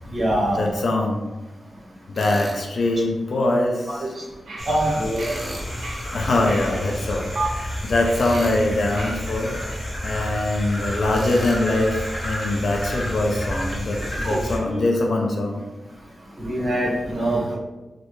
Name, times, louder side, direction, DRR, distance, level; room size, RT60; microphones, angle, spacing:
voice 1, 0.1-0.6 3.9-4.1 4.7-5.3 14.2-14.4 14.7-14.8 16.4-17.6, right 1 dB, 40° right, -4 dB, 1.1 m, -24 dB
voice 2, 0.6-1.2 2.1-4.0 6.1-9.6 10.0-15.6, left 2 dB, 65° left, 1 dB, 0.5 m, -23 dB
Tools, 2.1-2.6 5.1-5.7 8.1-8.7 11.1-11.6, right 1 dB, 25° right, 0.5 m, -36 dB
sound 1, 4.5-6.9 7.4-7.5 8.1-9.8, right 2 dB, 70° right, 0.6 m, -35 dB
sound 2, 4.6-14.6, equal, 40° left, 1.2 m, -30 dB
3.2 x 2.5 x 3.0 m, 1.1 s
wide cardioid pair, 110°, 0 cm